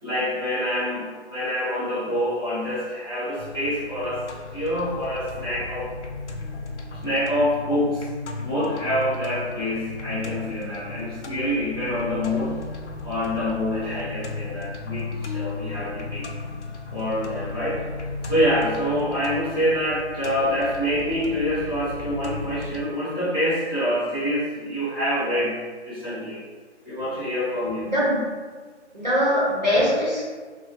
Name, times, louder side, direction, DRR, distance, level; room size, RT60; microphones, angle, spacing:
voice 1, 0.0-4.3 4.5-5.9 6.9-8.1 8.4-12.6 13.0-16.3 16.9-17.8 18.2-26.4 26.8-27.9, equal, 20° left, -14 dB, 0.9 m, -26 dB
sound 1, 3.4-22.8, left 3 dB, 75° left, 0.5 m, -35 dB
voice 2, 27.8-28.3 28.9-30.2, equal, 35° right, -8 dB, 0.8 m, -21 dB
3.2 x 2.2 x 2.9 m, 1.5 s
figure-of-eight pair, 175°, 35 cm